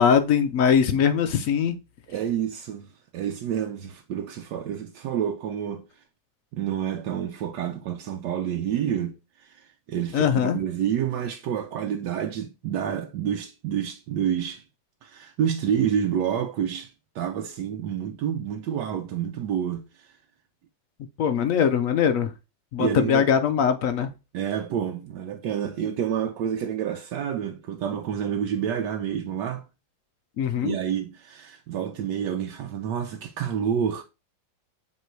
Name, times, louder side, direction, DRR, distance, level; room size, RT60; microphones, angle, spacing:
voice 1, 0.0-1.8 10.1-10.6 21.2-22.3 22.7-24.1 30.4-30.8, left 7 dB, 75° left, 0.7 m, -21 dB
voice 2, 2.1-6.0 6.5-14.6 15.0-20.2 22.8-23.3 24.3-29.7 30.6-34.0, right 9 dB, 75° right, 1.2 m, -29 dB
7.5 x 3.1 x 4.5 m
omnidirectional pair, 2.0 m